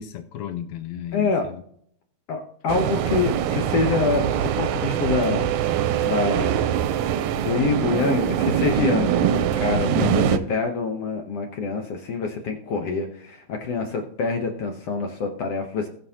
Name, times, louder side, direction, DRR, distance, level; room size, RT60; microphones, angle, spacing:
voice 1, 0.0-1.6 9.9-10.5, left 10 dB, 85° left, 8 dB, 2.0 m, -33 dB
voice 2, 1.1-1.4 2.3-6.7 7.4-9.3 9.6-15.9, left 4 dB, 65° left, 3 dB, 1.8 m, -26 dB
sound 1, 2.7-10.4, right 9 dB, 90° right, 2.1 m, -23 dB
20.0 x 6.8 x 2.8 m, 0.64 s
omnidirectional pair, 3.3 m